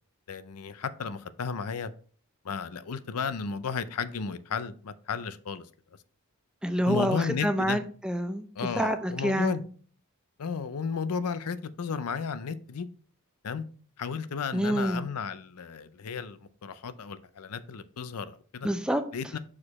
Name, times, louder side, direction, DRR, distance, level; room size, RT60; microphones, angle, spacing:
voice 1, 0.3-1.9 2.4-5.7 6.9-7.8 8.6-9.6 10.4-12.9 13.4-13.6 14.0-18.7 19.1-19.4, left 6 dB, 85° left, 0.5 m, -33 dB
voice 2, 6.6-8.5 8.8-9.6 14.5-15.1 18.6-19.0, equal, 5° right, 0.5 m, -27 dB
6.5 x 4.9 x 4.2 m
head